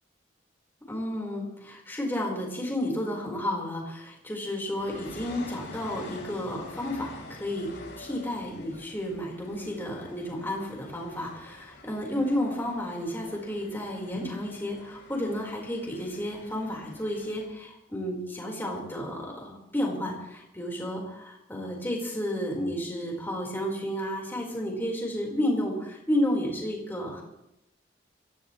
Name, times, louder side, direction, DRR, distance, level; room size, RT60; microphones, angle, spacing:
voice 1, 0.9-7.7 8.0-27.2, left 1 dB, 10° left, -2 dB, 4.6 m, -32 dB
sound 1, 4.7-17.5, left 2 dB, 85° left, 4.2 m, -47 dB
24.5 x 16.0 x 3.2 m, 0.85 s
head